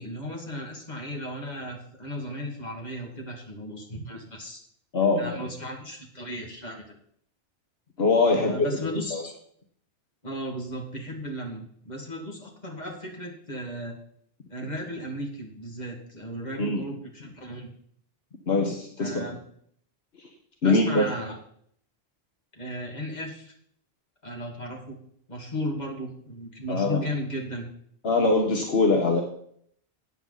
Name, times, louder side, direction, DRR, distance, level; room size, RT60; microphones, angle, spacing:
voice 1, 0.0-4.6 5.2-7.0 8.3-9.3 10.2-14.0 14.5-17.7 19.0-19.4 20.6-21.4 22.5-23.5 24.2-25.0 25.3-27.7, equal, 40° left, 0 dB, 2.5 m, -35 dB
voice 2, 4.9-5.4 8.0-8.5 8.8-9.2 16.6-16.9 18.5-19.2 20.2-20.3 20.6-21.1 26.7-27.0 28.0-29.2, left 3 dB, 70° left, 2 dB, 1.6 m, -23 dB
14.0 x 9.0 x 4.1 m, 0.65 s
omnidirectional pair, 1.1 m